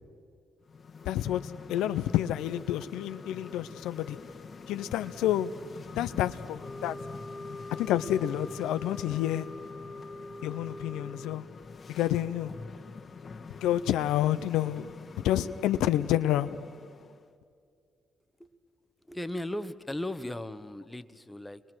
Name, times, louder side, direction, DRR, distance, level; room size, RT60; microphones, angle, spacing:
sound 1, 0.6-17.3, left 4 dB, 50° left, 1.4 m, -46 dB
voice 1, 1.1-4.2 4.7-5.5 6.0-7.0 7.8-9.5 10.4-11.4 11.9-12.5 13.6-14.9 15.2-16.6, left 12 dB, 85° left, 12 dB, 0.5 m, -29 dB
sound 2, 6.6-11.5, left 1 dB, 30° left, 1.7 m, -43 dB
voice 2, 19.1-21.6, left 1 dB, 15° left, 11 dB, 1.2 m, -37 dB
28.5 x 22.5 x 6.3 m, 2.3 s
supercardioid pair, 50°, 0 cm